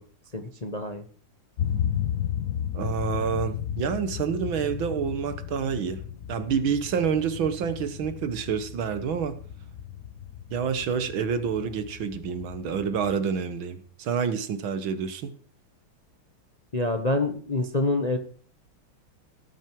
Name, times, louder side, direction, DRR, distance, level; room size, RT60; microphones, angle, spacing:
voice 1, 0.3-1.1 16.7-18.2, left 2 dB, 30° left, 0.8 m, -26 dB
sound 1, 1.6-13.1, left 10 dB, 75° left, 0.7 m, -34 dB
voice 2, 2.7-6.0 6.3-9.4 10.5-15.3, right 7 dB, 70° right, 1.9 m, -28 dB
17.0 x 9.2 x 4.7 m
omnidirectional pair, 2.4 m